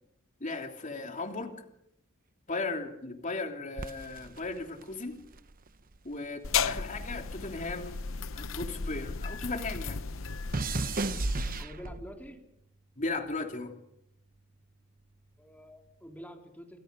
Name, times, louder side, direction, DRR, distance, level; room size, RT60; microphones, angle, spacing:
voice 1, 0.4-1.6 2.5-5.2 6.0-8.0 8.3-10.0 13.0-13.7, left 3 dB, 40° left, 4 dB, 3.2 m, -36 dB
sound 1, 3.8-6.3 6.6-9.2 9.5-12.3 13.0-13.4, right 2 dB, 45° right, 1.0 m, -36 dB
sound 2, 6.4-11.6, left 5 dB, 70° left, 0.8 m, -35 dB
voice 2, 6.5-6.8 11.6-12.4 15.4-16.8, equal, 10° left, 2 dB, 3.5 m, -47 dB
28.5 x 25.5 x 5.4 m, 0.78 s
head